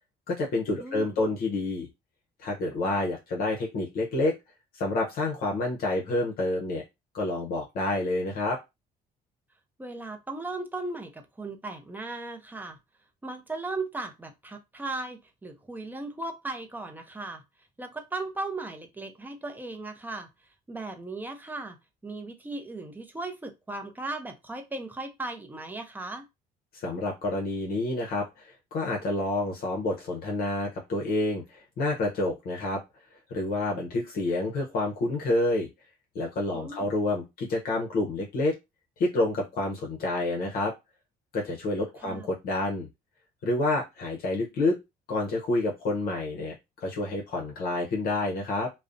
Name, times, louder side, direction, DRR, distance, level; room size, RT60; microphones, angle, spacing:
voice 1, 0.3-1.9 2.4-4.3 4.7-6.8 7.1-8.6 26.7-32.8 33.3-35.7 36.1-38.6 39.0-40.7 41.3-42.9 43.4-44.8 45.1-48.7, left 2 dB, 65° left, 0.7 m, -28 dB
voice 2, 0.8-1.2 9.8-12.8 13.2-17.4 17.8-20.3 20.7-21.8 22.0-26.2 36.5-36.9 42.0-42.3, right 2 dB, 10° right, 0.5 m, -37 dB
2.5 x 2.0 x 2.4 m
cardioid pair, 110°, 17 cm